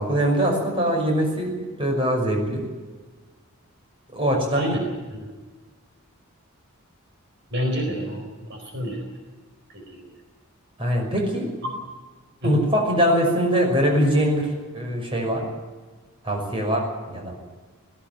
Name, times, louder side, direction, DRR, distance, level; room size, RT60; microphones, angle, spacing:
voice 1, 0.0-2.7 4.1-4.8 10.8-11.5 12.4-15.5 16.2-17.4, equal, 25° right, 1 dB, 5.9 m, -22 dB
voice 2, 7.5-9.0 9.7-10.0 11.6-11.7 12.4-12.5, equal, 55° right, 2 dB, 4.4 m, -29 dB
18.0 x 18.0 x 8.9 m, 1.4 s
head